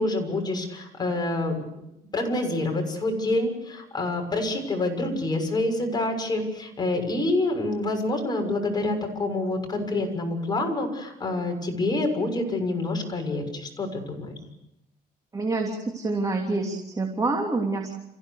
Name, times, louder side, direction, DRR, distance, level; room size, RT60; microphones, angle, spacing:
voice 1, 0.0-1.5 2.1-14.3, left 2 dB, 25° left, 3 dB, 6.7 m, -27 dB
voice 2, 15.3-18.0, right 3 dB, 20° right, 2 dB, 3.2 m, -27 dB
29.0 x 16.0 x 6.7 m, 0.84 s
cardioid pair, 110°, 17 cm